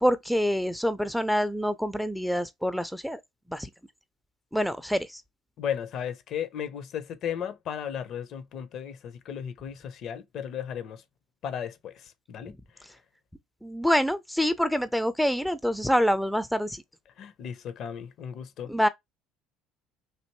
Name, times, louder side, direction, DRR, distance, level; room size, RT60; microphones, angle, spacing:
voice 1, 0.0-3.2 3.5-3.7 4.5-5.2 13.6-16.8 18.7-18.9, equal, ahead, 0.4 m, -26 dB
voice 2, 5.6-11.0 11.4-12.6 17.2-18.7, left 8 dB, 55° left, 0.5 m, -35 dB
3.2 x 2.6 x 3.0 m
hypercardioid pair, 60°, 0 cm